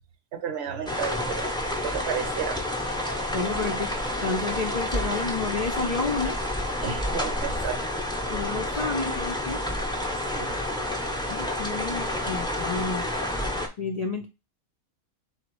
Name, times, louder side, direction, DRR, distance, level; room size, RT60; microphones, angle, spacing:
voice 1, 0.3-1.5 1.8-2.6 6.8-7.8 9.5-9.6 10.3-10.5 10.8-10.9, right 8 dB, 60° right, 8 dB, 0.9 m, -33 dB
sound 1, 0.9-13.7, left 1 dB, 5° left, 0.5 m, -29 dB
voice 2, 3.3-3.9 4.2-6.4 8.3-9.6 11.3-13.0 13.8-14.3, left 4 dB, 65° left, 3 dB, 0.3 m, -30 dB
3.9 x 2.4 x 4.5 m, 0.26 s
omnidirectional pair, 1.4 m